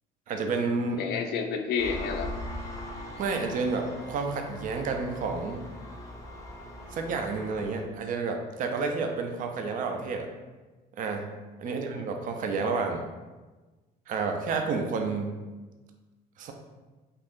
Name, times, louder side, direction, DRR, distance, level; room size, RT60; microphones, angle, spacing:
voice 1, 0.3-1.0 3.2-5.6 6.9-10.3 11.0-11.3 11.6-13.1 14.1-15.3 16.4-16.5, right 4 dB, 50° right, 4 dB, 0.4 m, -30 dB
voice 2, 1.0-2.3 11.6-12.0, left 6 dB, 75° left, 6 dB, 0.4 m, -30 dB
Engine, 1.8-7.8, left 1 dB, 20° left, 0.6 m, -40 dB
2.6 x 2.4 x 3.5 m, 1.2 s
cardioid pair, 110°, 17 cm